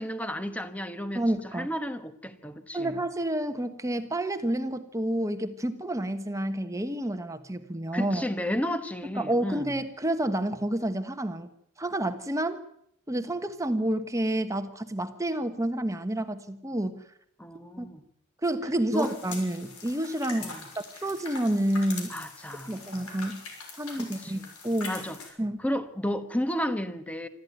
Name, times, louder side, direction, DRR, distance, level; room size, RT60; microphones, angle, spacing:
voice 1, 0.0-1.2 1.5-3.0 7.9-9.7 17.4-18.0 18.9-19.1 20.4-20.6 22.1-22.7 23.9-24.4 24.9-25.2 25.6-27.3, equal, 5° left, 1.3 m, -32 dB
voice 2, 1.1-1.7 2.7-8.2 9.1-11.5 11.8-12.6 13.1-17.0 17.8-17.9 18.4-22.2 22.7-23.4 23.8-25.0 25.4-25.6, right 1 dB, 15° right, 1.3 m, -29 dB
sound 1, 18.9-25.3, left 4 dB, 90° left, 6.2 m, -43 dB
26.0 x 14.0 x 9.3 m
head